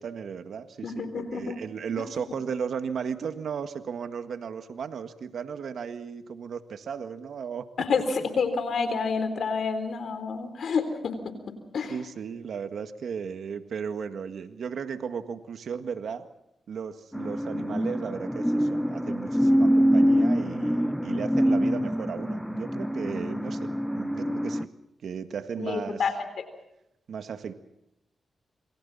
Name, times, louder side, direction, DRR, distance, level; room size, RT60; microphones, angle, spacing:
voice 1, 0.0-7.7 11.9-16.3 16.7-24.7 25.0-26.0 27.1-27.5, right 6 dB, 75° right, 9 dB, 1.8 m, -35 dB
voice 2, 0.8-1.6 2.0-2.1 7.8-11.3 11.7-11.9 25.6-26.1, left 5 dB, 75° left, 10 dB, 3.8 m, -28 dB
sound 1, 17.1-24.7, equal, ahead, 1.3 m, -25 dB
27.5 x 25.0 x 4.2 m, 0.84 s
cardioid pair, 50°, 0 cm